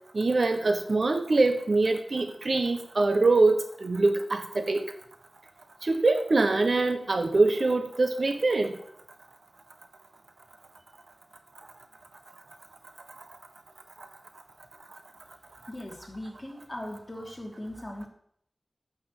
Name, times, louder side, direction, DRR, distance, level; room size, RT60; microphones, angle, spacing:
voice 1, 0.1-4.9 5.8-8.8, right 3 dB, 65° right, 8 dB, 1.0 m, -24 dB
voice 2, 15.7-18.1, left 1 dB, 25° left, 0 dB, 2.9 m, -39 dB
8.9 x 6.3 x 7.9 m, 0.69 s
wide cardioid pair, 80°, 0 cm